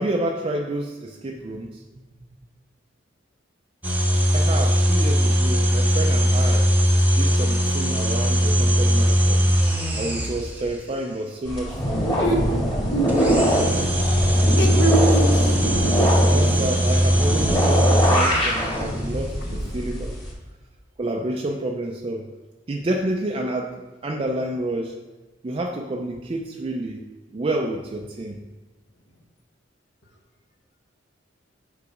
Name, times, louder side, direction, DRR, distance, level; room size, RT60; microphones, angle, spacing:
voice 1, 0.0-1.8 4.3-6.7 7.2-9.5 9.9-12.1 16.3-20.2 21.0-22.3 22.7-25.0 25.4-28.4, right 1 dB, 30° right, 1 dB, 0.4 m, -29 dB
sound 1, 3.8-10.8 13.1-18.9, equal, 10° right, 0.9 m, -20 dB
sound 2, 11.4-20.3, equal, 25° left, 1.7 m, -23 dB
voice 2, 12.9-14.1 14.6-15.6 19.4-19.7, right 2 dB, 65° left, 1 dB, 1.2 m, -25 dB
6.8 x 4.7 x 5.0 m, 1.2 s
head